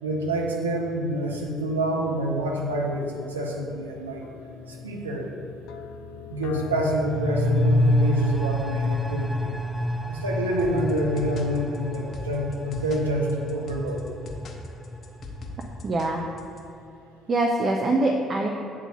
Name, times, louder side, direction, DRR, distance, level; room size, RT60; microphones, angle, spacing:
voice 1, 0.0-4.2 4.7-5.3 6.3-9.5 10.1-14.0, right 1 dB, 85° right, -1 dB, 0.8 m, -27 dB
sound 1, 1.4-8.0, left 7 dB, 65° left, 0.4 m, -42 dB
sound 2, 6.6-16.0 16.3-16.4, equal, 5° left, 0.6 m, -28 dB
sound 3, 10.6-16.6, left 1 dB, 45° left, 1.0 m, -40 dB
voice 2, 15.8-16.2 17.3-18.5, right 2 dB, 40° right, 1 dB, 0.7 m, -23 dB
8.0 x 3.8 x 6.4 m, 2.8 s
figure-of-eight pair, 50°, 0 cm